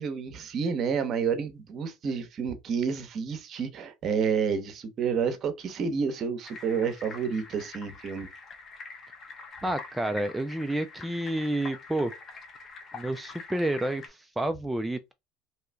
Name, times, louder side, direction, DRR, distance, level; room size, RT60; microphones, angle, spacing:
voice 1, 0.0-8.3, right 6 dB, 45° right, 0.8 m, -29 dB
sound 1, 6.4-14.1, left 4 dB, 40° left, 0.8 m, -45 dB
voice 2, 9.6-12.1 12.9-15.1, right 1 dB, 5° right, 0.3 m, -30 dB
2.8 x 2.3 x 3.3 m
supercardioid pair, 95°, 0 cm